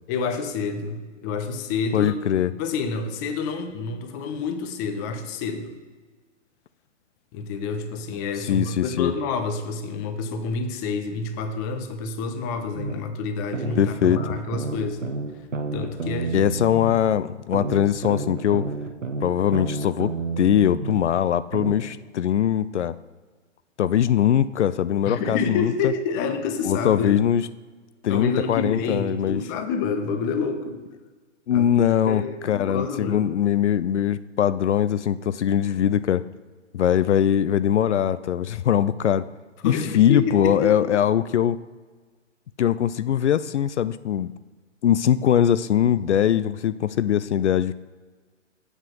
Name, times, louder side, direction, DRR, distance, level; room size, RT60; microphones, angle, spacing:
voice 1, 0.1-2.1 2.6-5.7 7.3-15.0 15.7-16.5 25.1-27.2 28.1-30.8 31.5-31.7 32.1-33.3 39.6-40.9, left 5 dB, 15° left, 7 dB, 0.5 m, -28 dB
voice 2, 1.9-2.5 8.5-9.1 13.8-14.3 16.3-18.7 19.2-22.9 23.8-25.9 26.6-27.4 28.0-29.4 31.5-36.2 36.7-39.3 39.6-41.6 42.6-44.3 44.8-47.7, left 10 dB, 65° left, 16 dB, 0.5 m, -21 dB
sound 1, 12.7-13.0 13.5-17.0 17.5-21.0 21.5-21.8, right 4 dB, 85° right, 1.2 m, -30 dB
8.0 x 5.7 x 6.2 m, 1.4 s
figure-of-eight pair, 125°, 37 cm